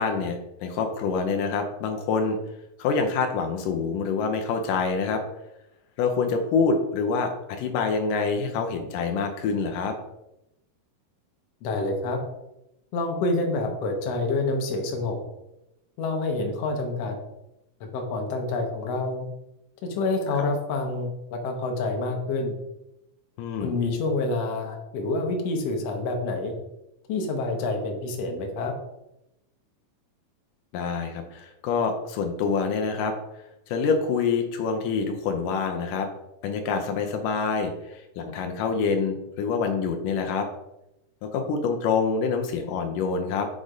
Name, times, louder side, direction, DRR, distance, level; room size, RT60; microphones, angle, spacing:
voice 1, 0.0-2.4 2.8-5.2 6.0-10.0 20.4-20.5 23.4-23.8 30.7-33.2 33.7-36.1 36.4-40.5 41.2-43.5, left 5 dB, 80° left, 4 dB, 2.3 m, -26 dB
voice 2, 11.6-12.2 12.9-15.2 16.0-17.2 17.9-19.3 19.8-22.6 23.6-26.5 27.1-28.7, left 2 dB, 65° left, 3 dB, 1.9 m, -27 dB
6.3 x 4.0 x 5.0 m, 0.89 s
omnidirectional pair, 3.7 m